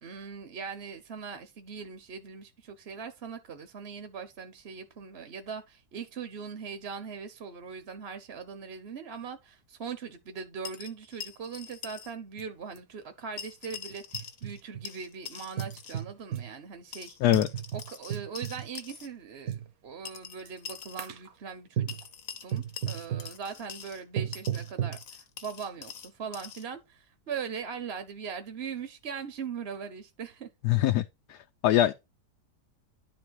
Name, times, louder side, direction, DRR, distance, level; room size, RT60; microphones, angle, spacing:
voice 1, 0.0-17.2 17.7-19.6 19.8-22.0 22.4-30.5 31.7-31.8, right 6 dB, 45° right, 1.0 m, -40 dB
sound 1, 10.6-12.1 12.4-12.5 13.4-14.6 14.9-16.0 16.9-19.1 20.1-21.1 21.9-24.0 24.3-26.7, left 8 dB, 60° left, 1.4 m, -44 dB
sound 2, 12.4-12.5 12.8-12.9 13.7-14.8 15.6-16.5 17.3-18.7 19.5-19.7 20.5-20.7 21.0-21.3 21.8-22.1 22.5-23.3 24.2-25.0, right 10 dB, 65° right, 1.3 m, -34 dB
voice 2, 30.6-31.0 31.6-31.9, left 13 dB, 75° left, 1.2 m, -22 dB
11.0 x 4.3 x 4.7 m
omnidirectional pair, 1.8 m